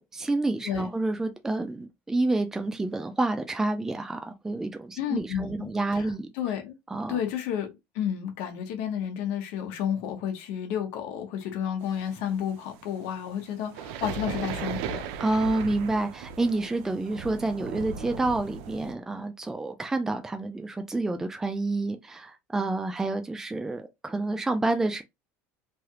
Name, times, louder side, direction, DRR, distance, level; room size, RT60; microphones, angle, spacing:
voice 1, 0.0-6.3 6.9-7.2 15.2-25.0, right 2 dB, 10° right, 0.4 m, -29 dB
voice 2, 5.0-6.8 7.1-15.1, left 9 dB, 70° left, 1.1 m, -31 dB
sound 1, 11.8-18.9, right 7 dB, 75° right, 0.5 m, -37 dB
3.2 x 2.3 x 2.9 m
cardioid pair, 135°, 6 cm